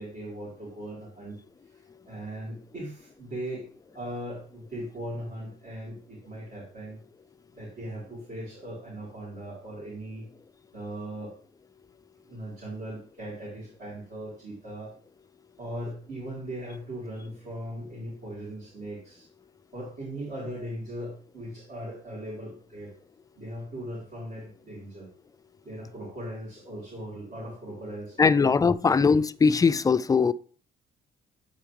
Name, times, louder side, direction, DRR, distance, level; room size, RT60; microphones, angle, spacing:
voice 1, 0.0-1.4 2.0-7.0 7.5-10.3 10.7-11.3 12.2-14.9 15.6-19.3 19.7-22.9 23.3-25.1 25.6-28.5 28.8-29.1, right 1 dB, 50° right, 3.3 m, -39 dB
voice 2, 28.2-30.3, left 5 dB, 20° left, 0.3 m, -21 dB
7.6 x 4.9 x 3.1 m
cardioid pair, 90°, 20 cm